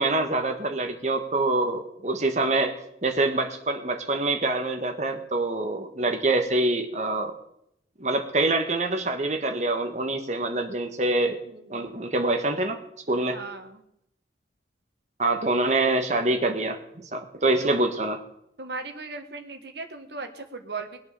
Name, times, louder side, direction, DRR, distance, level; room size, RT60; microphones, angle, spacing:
voice 1, 0.0-2.8 3.0-7.3 8.0-11.4 11.7-12.8 13.1-13.4 15.2-18.2, right 2 dB, 40° right, 5 dB, 1.6 m, -25 dB
voice 2, 11.5-11.9 13.3-13.8 17.6-17.7 18.6-21.0, right 3 dB, 70° right, 5 dB, 1.7 m, -37 dB
20.5 x 8.3 x 6.8 m, 0.79 s
head